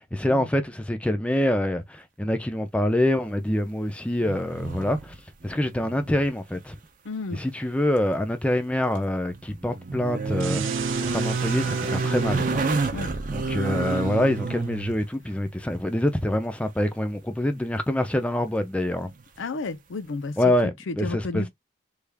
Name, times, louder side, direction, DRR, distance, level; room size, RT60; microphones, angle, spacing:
voice 1, 0.0-5.2 5.4-6.8 7.3-12.6 13.3-19.1 20.4-21.4, left 1 dB, 5° left, 0.4 m, -26 dB
sound 1, 4.2-5.2 5.5-6.3 6.5-6.6 9.1-15.0 17.9-18.0, right 3 dB, 45° right, 0.6 m, -28 dB
voice 2, 7.0-7.4 12.9-13.1 13.6-13.8 19.4-20.4 20.6-21.5, left 3 dB, 80° left, 0.6 m, -32 dB
sound 2, 10.4-12.9, right 9 dB, 90° right, 0.6 m, -37 dB
3.3 x 2.3 x 3.4 m
head